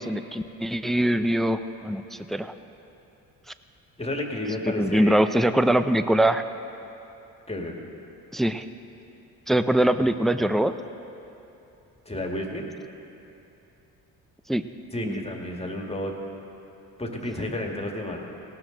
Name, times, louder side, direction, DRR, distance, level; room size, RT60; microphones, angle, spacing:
voice 1, 0.0-2.5 4.7-6.4 8.3-8.6 9.5-10.7 14.5-14.6 15.0-15.2, right 1 dB, ahead, 11 dB, 0.4 m, -23 dB
voice 2, 4.0-5.2 7.5-7.8 12.1-12.7 14.9-16.2 17.0-18.2, left 1 dB, 15° left, 1 dB, 1.9 m, -31 dB
17.0 x 12.5 x 3.9 m, 2.8 s
supercardioid pair, 70°, 36 cm